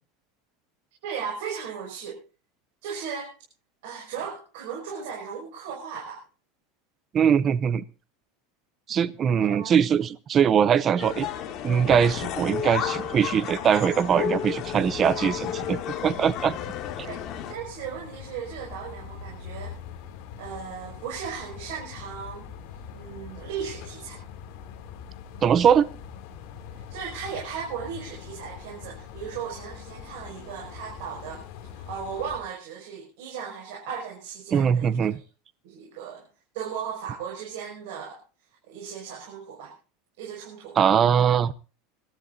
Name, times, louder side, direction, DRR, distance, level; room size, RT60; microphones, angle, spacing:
voice 1, 1.0-2.2 2.8-3.3 3.8-6.2 9.4-9.7 17.0-19.7 20.4-22.5 22.9-24.2 26.7-31.4 31.7-35.2 35.6-36.3 36.5-38.2 38.7-39.7 40.2-40.8, right 7 dB, 65° right, 6.1 m, -36 dB
voice 2, 7.1-7.8 8.9-11.3 11.6-16.6 25.4-25.8 34.5-35.2 40.8-41.5, right 8 dB, 25° right, 0.6 m, -21 dB
sound 1, 11.0-17.5, left 9 dB, 35° left, 2.3 m, -32 dB
sound 2, 14.6-32.4, left 7 dB, 55° left, 2.6 m, -43 dB
26.0 x 13.0 x 2.7 m
supercardioid pair, 165°, 0 cm